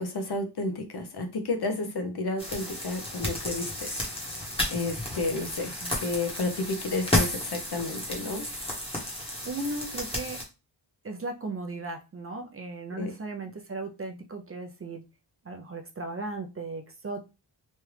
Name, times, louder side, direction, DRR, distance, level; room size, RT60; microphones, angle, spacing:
voice 1, 0.0-3.9 4.7-5.7 6.0-8.4 13.0-13.1, left 2 dB, 60° left, 5 dB, 0.8 m, -31 dB
sound 1, 2.4-10.4, left 1 dB, 10° left, 1.0 m, -32 dB
voice 2, 5.6-6.0 9.4-10.4 11.0-15.0 15.5-17.2, right 2 dB, 30° right, 3 dB, 0.5 m, -36 dB
3.1 x 2.4 x 3.2 m, 0.28 s
wide cardioid pair, 105°, 45 cm